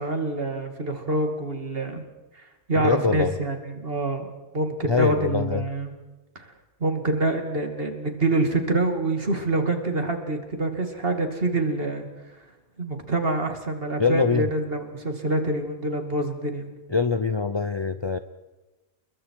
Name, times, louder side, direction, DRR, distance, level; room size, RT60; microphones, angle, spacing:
voice 1, 0.0-2.0 2.3-2.4 2.7-5.9 6.3-6.5 6.8-12.0 12.8-16.7, right 2 dB, 40° right, 5 dB, 2.7 m, -26 dB
voice 2, 2.8-3.3 4.9-5.6 14.0-14.5 16.9-18.2, left 4 dB, 30° left, 10 dB, 0.5 m, -23 dB
29.5 x 21.5 x 4.8 m, 1.1 s
omnidirectional pair, 1.5 m